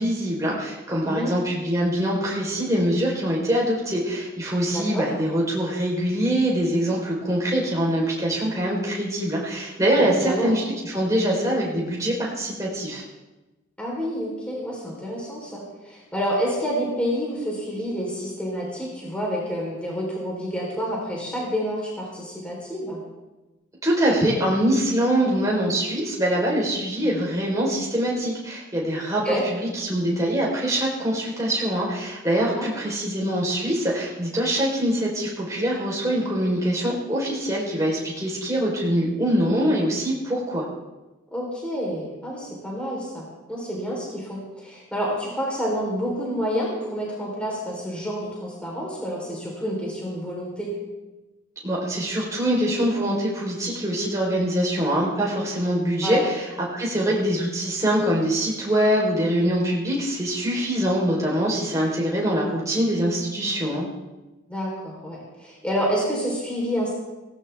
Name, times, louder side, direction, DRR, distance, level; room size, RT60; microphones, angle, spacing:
voice 1, 0.0-13.0 23.8-40.7 51.6-56.5 56.7-63.9, right 1 dB, 15° right, -4 dB, 3.8 m, -24 dB
voice 2, 4.7-5.1 10.1-10.6 13.8-23.0 29.2-29.4 32.6-32.8 41.3-50.7 56.0-56.3 57.0-57.1 64.5-66.9, equal, 5° left, -4 dB, 3.6 m, -28 dB
17.5 x 16.5 x 3.4 m, 1.1 s
head